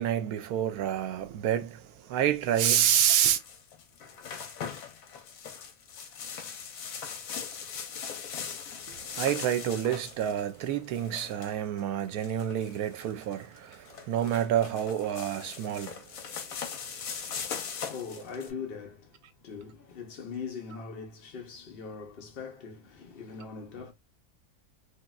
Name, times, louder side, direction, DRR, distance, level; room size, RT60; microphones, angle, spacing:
voice 1, 0.0-3.4 8.9-16.1 16.8-16.9, right 10 dB, 80° right, 1.1 m, -28 dB
sound 1, 2.9-18.5, left 7 dB, 70° left, 1.1 m, -40 dB
voice 2, 17.1-23.9, left 5 dB, 55° left, 0.7 m, -41 dB
3.0 x 2.7 x 2.2 m
omnidirectional pair, 1.6 m